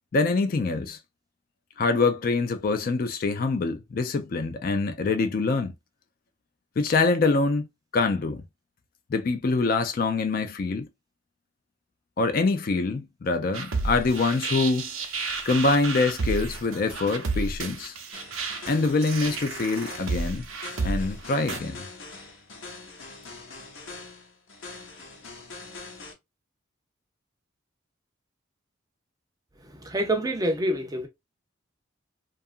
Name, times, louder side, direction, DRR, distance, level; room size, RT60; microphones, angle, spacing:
voice 1, 0.1-1.0 1.8-5.7 6.8-7.7 7.9-8.4 9.1-10.9 12.2-14.9 15.5-18.0 18.7-20.5 20.8-21.9, left 3 dB, 45° left, 0.3 m, -25 dB
sound 1, 13.5-21.6, right 3 dB, 90° right, 0.6 m, -31 dB
sound 2, 18.1-26.1, left 3 dB, 75° left, 0.8 m, -43 dB
voice 2, 29.6-31.1, right 1 dB, 20° right, 0.5 m, -27 dB
2.8 x 2.4 x 2.4 m
head